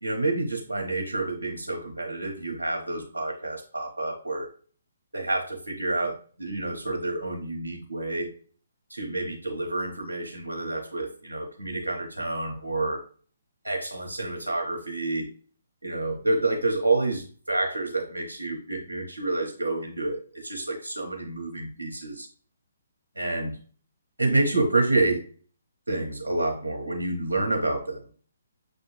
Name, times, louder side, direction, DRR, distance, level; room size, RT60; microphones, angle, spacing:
voice 1, 0.0-4.5 5.1-8.3 8.9-13.0 13.6-15.3 15.8-22.3 23.2-23.6 24.2-25.2 25.9-28.1, right 2 dB, 80° right, 2 dB, 0.9 m, -28 dB
6.5 x 2.6 x 3.1 m, 0.41 s
figure-of-eight pair, 135°, 0 cm